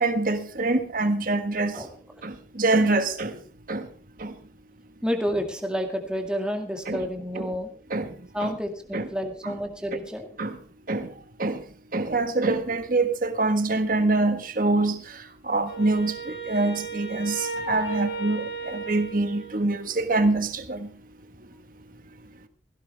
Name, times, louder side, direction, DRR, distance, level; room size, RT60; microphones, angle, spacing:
voice 1, 0.0-1.8 2.2-3.4 3.7-3.8 4.2-4.3 6.9-7.0 7.3-7.5 7.9-8.1 8.4-8.5 8.9-9.1 9.4-9.5 10.4-10.5 10.9-11.1 11.4-11.6 11.9-15.0 15.5-20.9, right 2 dB, 50° right, 1.6 m, -25 dB
voice 2, 5.0-7.7 8.3-10.3, equal, 5° right, 2.1 m, -29 dB
Wind instrument woodwind instrument, 15.6-20.0, right 3 dB, 75° left, 5.0 m, -35 dB
16.5 x 16.0 x 3.5 m
head